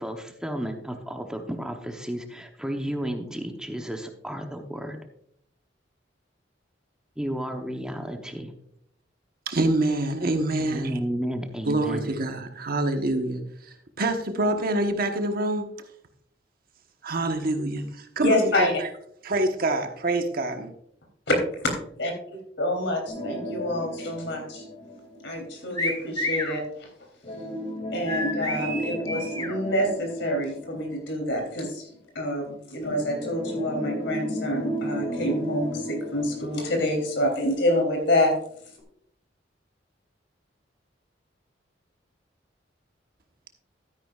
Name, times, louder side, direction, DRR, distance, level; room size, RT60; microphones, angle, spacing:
voice 1, 0.0-5.0 7.2-8.5 10.6-12.1, equal, 5° right, 4 dB, 0.9 m, -32 dB
voice 2, 9.5-11.0 11.7-15.7 17.0-18.9 19.2-20.7, right 2 dB, 55° right, 5 dB, 1.2 m, -26 dB
voice 3, 18.2-18.7 21.3-21.4 22.0-24.6 25.2-26.9 27.9-31.9 32.1-38.3, left 1 dB, 80° left, 2 dB, 3.3 m, -27 dB
sound 1, 23.1-25.8 27.2-31.6 32.8-37.8 38.1-38.2 38.8-38.9, equal, 40° left, 2.2 m, -35 dB
sound 2, 25.8-26.5 28.1-29.5, left 1 dB, 20° left, 1.6 m, -29 dB
12.5 x 9.8 x 2.4 m, 0.70 s
head